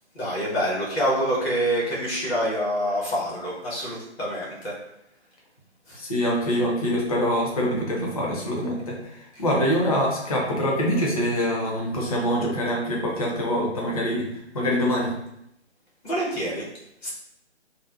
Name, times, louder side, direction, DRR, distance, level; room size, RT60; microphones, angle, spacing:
voice 1, 0.1-4.8 5.9-6.0 16.0-16.7 17.0-17.1, equal, 60° left, -6 dB, 1.2 m, -26 dB
voice 2, 6.0-15.2, equal, 35° left, -2 dB, 0.5 m, -25 dB
2.4 x 2.1 x 2.4 m, 0.79 s
figure-of-eight pair, 150°, 35 cm